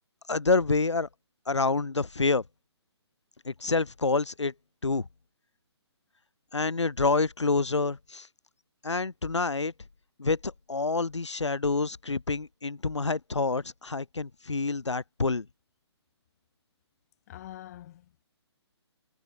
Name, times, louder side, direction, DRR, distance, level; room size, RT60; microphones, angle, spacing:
voice 1, 0.3-1.1 1.5-2.4 3.4-4.5 4.8-5.1 6.5-8.3 8.8-9.7 10.2-15.5, left 3 dB, 80° left, 0.9 m, -27 dB
voice 2, 17.3-18.2, left 13 dB, 35° left, 2.0 m, -45 dB
figure-of-eight pair, 135°, 15 cm